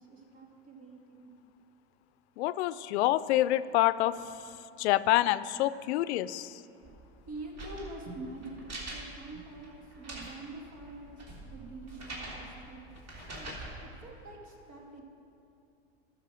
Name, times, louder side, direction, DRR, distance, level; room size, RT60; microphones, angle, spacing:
voice 1, 0.0-1.3 7.3-12.9 13.3-15.0, right 2 dB, 65° right, 0 dB, 2.5 m, -46 dB
voice 2, 2.4-6.6 13.5-13.6, left 15 dB, 80° left, 16 dB, 0.5 m, -28 dB
sound 1, 6.8-13.7, right 2 dB, 45° right, 3.3 m, -45 dB
13.0 x 6.9 x 6.2 m, 2.6 s
supercardioid pair, 115°, 33 cm